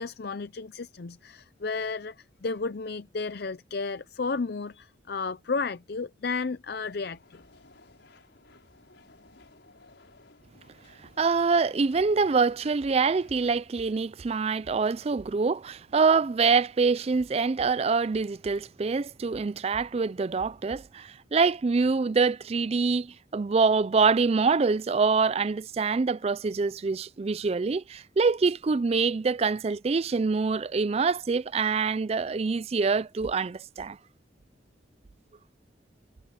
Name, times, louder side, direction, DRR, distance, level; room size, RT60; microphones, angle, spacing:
voice 1, 0.0-7.4, left 4 dB, 55° left, 0.6 m, -33 dB
sound 1, 6.8-13.6, left 2 dB, 75° left, 6.1 m, -57 dB
voice 2, 11.2-34.0, right 4 dB, 35° right, 0.4 m, -25 dB
head